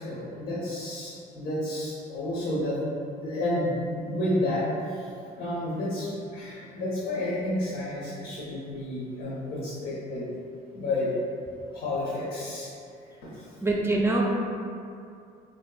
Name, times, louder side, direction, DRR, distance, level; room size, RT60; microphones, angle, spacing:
voice 1, 0.0-2.8 3.2-4.7 4.9-5.0 5.4-10.3 10.7-11.1 11.7-12.7 13.2-13.5, left 1 dB, 70° left, -8 dB, 0.7 m, -31 dB
voice 2, 13.6-14.2, right 2 dB, 15° right, -1 dB, 0.4 m, -24 dB
3.4 x 2.7 x 2.3 m, 2.4 s
cardioid pair, 110°, 17 cm